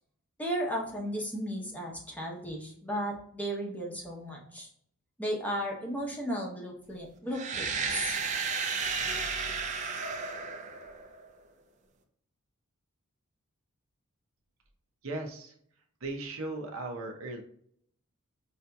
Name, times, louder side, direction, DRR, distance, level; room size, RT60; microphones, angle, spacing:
voice 1, 0.4-4.7 5.2-8.2, equal, 5° left, -2 dB, 0.7 m, -35 dB
sound 1, 7.3-11.2, right 5 dB, 35° right, 0.5 m, -33 dB
voice 2, 15.0-15.5 16.0-17.4, right 2 dB, 70° right, 2 dB, 0.7 m, -37 dB
4.8 x 2.8 x 2.2 m, 0.67 s
head